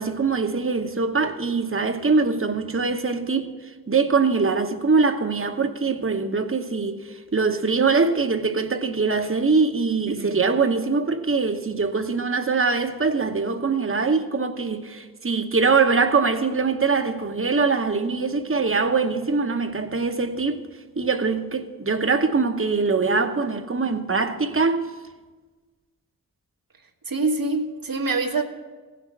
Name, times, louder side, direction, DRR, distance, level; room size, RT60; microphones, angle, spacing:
voice 1, 0.0-3.5 3.9-20.7 21.0-24.9, right 4 dB, 35° right, 1.0 m, -23 dB
voice 2, 10.1-10.4 27.1-28.4, right 3 dB, 70° right, 1.4 m, -25 dB
16.0 x 6.1 x 7.3 m
wide cardioid pair, 60°, 35 cm